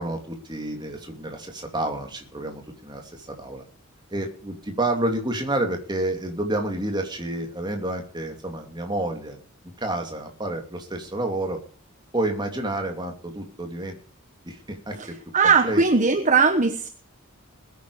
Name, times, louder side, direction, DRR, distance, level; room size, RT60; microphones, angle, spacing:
voice 1, 0.0-3.6 4.1-9.4 9.8-11.6 12.1-13.9 14.4-15.1 15.4-15.8, right 1 dB, 20° right, 3 dB, 3.0 m, -29 dB
voice 2, 15.3-16.9, right 5 dB, 35° right, 8 dB, 1.2 m, -19 dB
21.0 x 9.6 x 5.0 m, 0.43 s
head